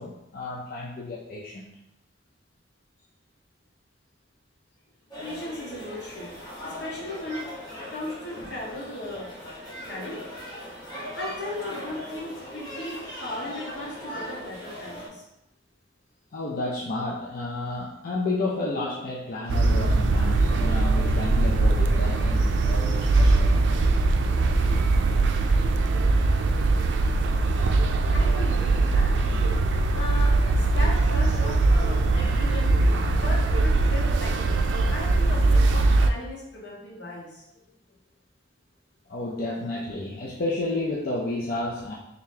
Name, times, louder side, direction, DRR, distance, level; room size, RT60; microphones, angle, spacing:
voice 1, 0.0-1.8 16.3-23.5 39.1-42.0, left 2 dB, 55° left, -5 dB, 0.5 m, -31 dB
sound 1, 5.1-15.1, equal, 25° left, 1.4 m, -39 dB
voice 2, 5.2-6.3 6.6-7.4 7.9-9.2 9.8-10.2 11.2-15.2 28.1-29.1 29.7-30.3 30.6-32.7 33.0-37.4, left 1 dB, 85° left, -5 dB, 1.4 m, -37 dB
sound 2, 19.5-36.1, right 2 dB, 90° right, 0.3 m, -21 dB
3.8 x 3.5 x 2.8 m, 0.85 s
head